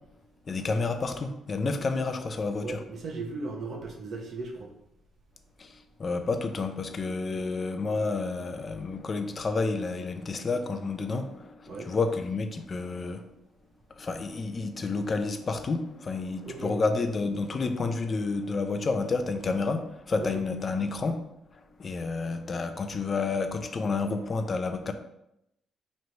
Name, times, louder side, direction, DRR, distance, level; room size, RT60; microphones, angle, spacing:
voice 1, 0.5-2.8 5.6-13.3 14.0-21.2 21.5-24.9, left 3 dB, 40° left, 7 dB, 0.4 m, -30 dB
voice 2, 2.6-4.7 11.7-11.9 16.4-16.7 20.2-20.4, right 3 dB, 55° right, 2 dB, 0.8 m, -37 dB
3.1 x 2.6 x 4.5 m, 0.83 s
cardioid pair, 90°, 0 cm